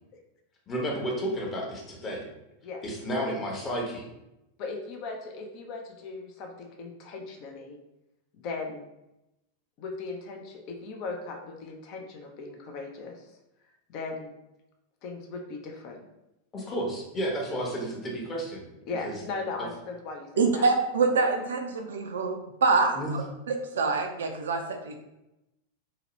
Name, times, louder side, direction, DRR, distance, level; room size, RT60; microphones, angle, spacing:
voice 1, 0.7-2.3 2.8-4.1 16.5-18.7 19.0-19.2 22.9-23.1, right 1 dB, 25° left, -1 dB, 0.8 m, -32 dB
voice 2, 4.6-7.8 8.4-8.8 9.8-13.2 13.9-14.3 15.0-16.1 18.9-20.7, left 3 dB, 40° left, 3 dB, 0.4 m, -38 dB
voice 3, 20.4-22.9 23.5-25.0, right 4 dB, 65° right, 4 dB, 0.4 m, -25 dB
2.8 x 2.1 x 2.9 m, 0.91 s
figure-of-eight pair, 90°, 0 cm